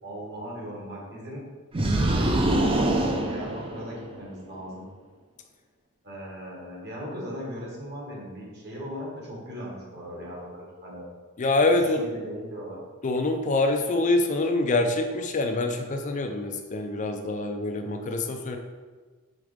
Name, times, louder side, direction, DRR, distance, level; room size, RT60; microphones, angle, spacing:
voice 1, 0.0-1.4 1.7-4.9 6.0-11.1 11.9-12.8, equal, 50° right, -3 dB, 1.6 m, -38 dB
sound 1, 1.7-4.2, right 1 dB, 25° right, 0.5 m, -24 dB
voice 2, 11.4-12.0 13.0-18.6, left 2 dB, 35° left, 5 dB, 0.4 m, -25 dB
5.0 x 4.0 x 5.0 m, 1.4 s
head